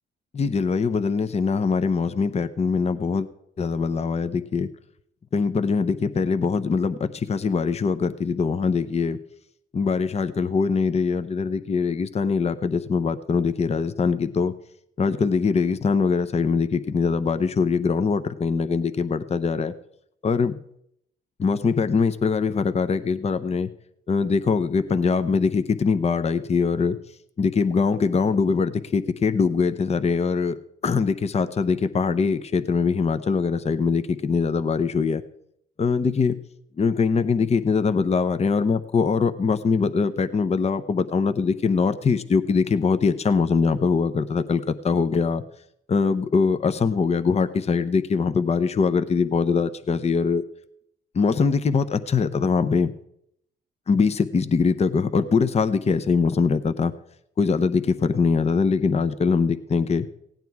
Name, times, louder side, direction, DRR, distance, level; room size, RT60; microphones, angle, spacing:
voice 1, 0.3-3.3 3.6-4.7 5.3-9.2 9.7-14.5 15.0-19.7 20.2-20.5 21.4-23.7 24.1-27.0 27.4-30.6 30.8-35.2 35.8-36.4 36.8-45.4 45.9-50.4 51.1-52.9 53.9-56.9 57.4-60.1, left 5 dB, 30° left, 10 dB, 0.7 m, -22 dB
16.5 x 9.1 x 4.7 m, 0.74 s
cardioid pair, 90°, 20 cm